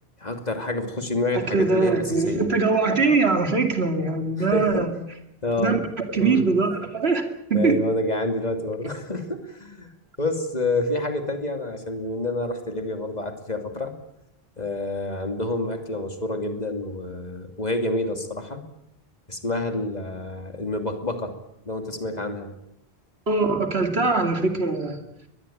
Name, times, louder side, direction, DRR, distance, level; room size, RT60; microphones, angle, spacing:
voice 1, 0.2-2.4 4.5-4.9 5.4-5.8 6.2-6.4 7.5-9.9 10.2-13.9 14.6-18.6 19.3-21.3 21.6-22.5, left 2 dB, 40° left, 6 dB, 2.9 m, -28 dB
voice 2, 1.5-4.9 5.6-5.8 6.1-7.2 7.5-7.8 23.3-25.0, right 3 dB, 75° right, 6 dB, 3.0 m, -22 dB
22.5 x 20.0 x 9.0 m, 0.81 s
omnidirectional pair, 1.1 m